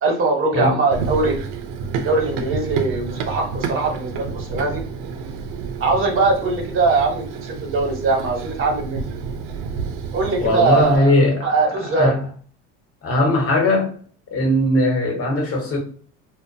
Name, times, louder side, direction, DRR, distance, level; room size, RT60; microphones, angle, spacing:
voice 1, 0.0-1.4 2.0-4.8 5.8-9.0 10.1-11.1 11.4-12.2, right 3 dB, 45° right, 1.0 m, -21 dB
Run, 0.9-11.0, right 5 dB, 75° right, 0.6 m, -30 dB
voice 2, 10.4-11.5 12.0-12.2 13.0-13.9 14.3-15.8, left 1 dB, 45° left, 1.1 m, -19 dB
2.5 x 2.1 x 2.6 m
supercardioid pair, 90°, 31 cm